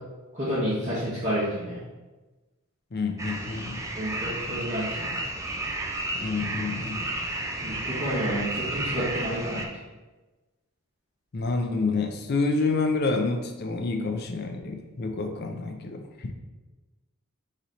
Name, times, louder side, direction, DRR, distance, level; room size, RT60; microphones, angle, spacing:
voice 1, 0.3-1.8 4.0-5.2 7.6-9.6, equal, 35° right, -11 dB, 1.3 m, -29 dB
voice 2, 2.9-3.8 6.2-7.1 11.3-16.3, left 3 dB, 50° left, 5 dB, 0.5 m, -28 dB
sound 1, 3.2-9.7, right 2 dB, 15° right, 0.4 m, -32 dB
4.1 x 3.1 x 3.9 m, 1.2 s
head